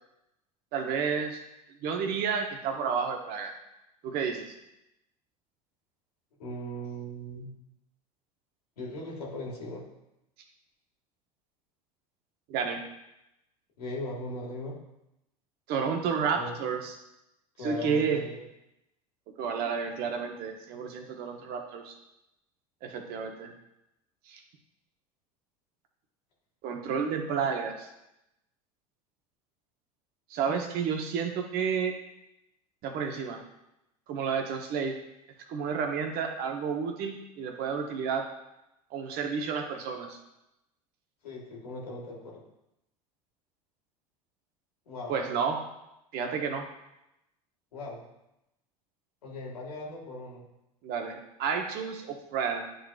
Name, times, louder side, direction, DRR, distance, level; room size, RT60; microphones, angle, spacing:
voice 1, 0.7-1.4 1.8-3.5 4.0-4.5 12.5-12.8 15.7-16.9 17.6-18.2 19.4-21.9 22.8-23.5 24.3-24.4 26.6-27.9 30.3-32.0 32.8-33.4 34.1-35.0 35.5-38.3 38.9-40.2 45.1-45.7 46.1-46.7 50.8-52.6, right 6 dB, 55° right, 4 dB, 1.0 m, -31 dB
voice 2, 6.4-7.5 8.8-9.8 13.8-14.8 16.3-16.6 17.6-18.4 41.2-42.4 44.9-45.2 47.7-48.0 49.2-50.5, left 1 dB, 80° left, -3 dB, 1.8 m, -38 dB
10.0 x 4.0 x 2.4 m, 0.88 s
hypercardioid pair, 75°, 20 cm